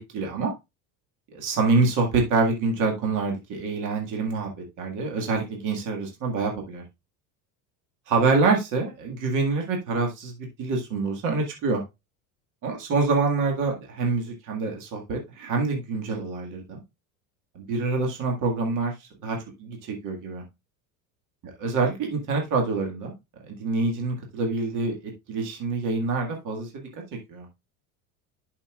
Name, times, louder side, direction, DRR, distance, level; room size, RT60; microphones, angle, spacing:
voice 1, 0.1-0.5 1.3-6.8 8.1-11.8 12.6-16.8 17.6-20.4 21.6-23.1 23.5-26.9 27.3-27.5, right 3 dB, 50° right, 1 dB, 2.1 m, -26 dB
11.0 x 5.8 x 2.4 m, 0.23 s
cardioid pair, 125°, 38 cm